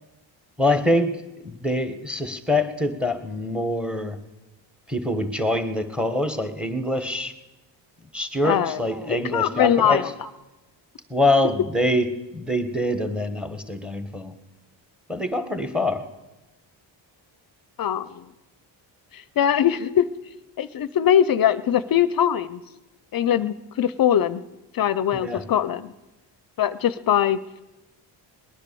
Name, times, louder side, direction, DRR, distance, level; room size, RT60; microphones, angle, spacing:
voice 1, 0.6-1.1 1.4-4.2 4.9-7.3 8.1-10.1 11.1-12.1 12.3-14.3 15.1-16.0 25.2-25.4, left 1 dB, ahead, 8 dB, 1.4 m, -24 dB
voice 2, 8.4-8.8 9.1-10.1 17.8-18.3 19.1-20.1 20.6-22.6 23.1-24.4 24.7-25.9 26.6-27.6, left 10 dB, 50° left, 15 dB, 0.6 m, -22 dB
19.5 x 10.0 x 6.9 m, 1.0 s
cardioid pair, 100°, 45 cm